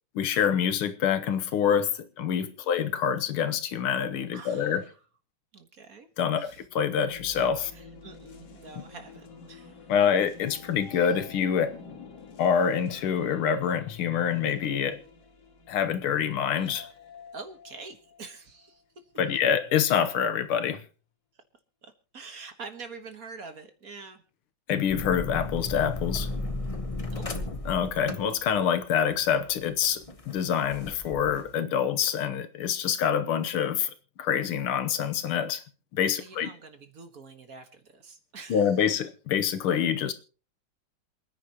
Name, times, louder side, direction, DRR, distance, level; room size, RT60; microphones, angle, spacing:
voice 1, 0.2-4.8 6.2-7.7 9.9-11.8 12.4-15.0 15.7-16.9 19.2-20.8 24.7-26.3 27.7-35.6 35.9-36.5 38.5-40.1, left 8 dB, 90° left, 1.9 m, -26 dB
voice 2, 4.3-4.8 5.5-6.1 6.4-6.6 7.7-9.8 17.3-18.8 21.8-24.2 27.0-27.3 36.2-38.6, right 4 dB, 45° right, 1.7 m, -45 dB
sound 1, 7.0-18.8, left 4 dB, 55° left, 2.2 m, -49 dB
sound 2, 24.9-31.6, left 2 dB, 35° left, 0.5 m, -35 dB
27.5 x 10.0 x 2.9 m
omnidirectional pair, 2.3 m